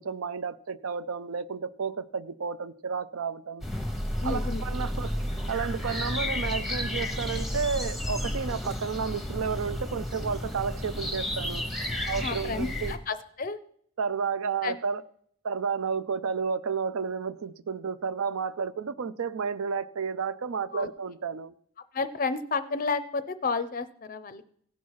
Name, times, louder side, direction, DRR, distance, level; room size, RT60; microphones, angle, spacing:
voice 1, 0.0-3.6 4.2-5.1 5.5-11.6 12.1-12.9 14.0-15.0 15.4-21.5, right 6 dB, 80° right, 0.5 m, -31 dB
sound 1, 3.6-13.0, left 1 dB, ahead, 0.8 m, -32 dB
voice 2, 4.2-4.6 12.1-13.6 14.6-14.8 20.7-20.9 21.9-24.5, left 4 dB, 40° left, 0.5 m, -31 dB
16.5 x 5.7 x 4.7 m
head